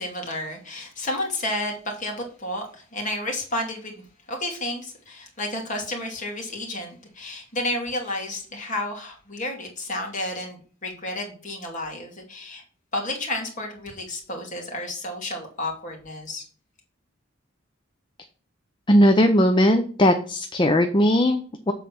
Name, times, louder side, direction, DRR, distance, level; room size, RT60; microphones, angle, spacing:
voice 1, 0.0-12.6 12.9-16.4, left 1 dB, 40° left, 0 dB, 2.4 m, -31 dB
voice 2, 18.9-21.7, equal, 25° left, 6 dB, 0.6 m, -18 dB
7.5 x 4.1 x 5.9 m, 0.43 s
head